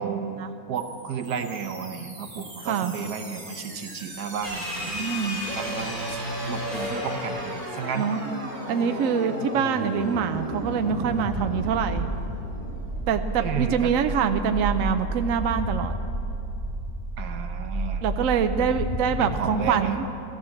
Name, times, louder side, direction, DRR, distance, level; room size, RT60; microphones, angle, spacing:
voice 1, 0.0-4.9 5.5-8.0 13.4-13.9 17.2-18.0 18.6-18.7 19.2-20.0, right 7 dB, 80° right, 6 dB, 1.5 m, -33 dB
sound 1, 0.8-19.7, right 1 dB, 30° right, 2.2 m, -33 dB
sound 2, 4.4-8.8, left 1 dB, 30° left, 2.6 m, -33 dB
voice 2, 4.9-5.4 8.0-8.2 8.7-12.1 13.1-16.0 18.0-20.1, right 7 dB, 65° right, 8 dB, 1.0 m, -25 dB
15.0 x 13.0 x 7.1 m, 2.7 s
omnidirectional pair, 1.7 m